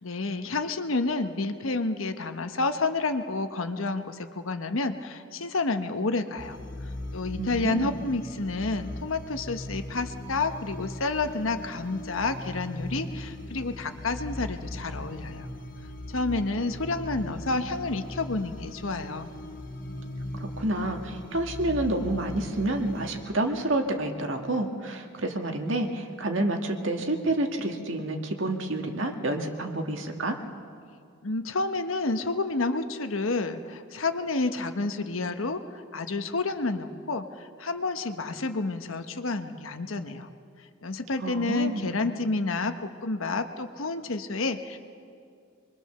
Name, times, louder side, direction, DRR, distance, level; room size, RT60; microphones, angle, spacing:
voice 1, 0.0-6.6 7.1-15.5 16.1-19.3 31.2-40.3 40.8-44.8, left 3 dB, 85° left, 8 dB, 1.2 m, -30 dB
sound 1, 6.4-23.2, left 1 dB, 40° left, 1.6 m, -39 dB
voice 2, 7.4-8.0 20.3-30.4 41.2-42.0, right 2 dB, 70° right, 4 dB, 1.9 m, -29 dB
25.0 x 22.5 x 6.8 m, 2.4 s
head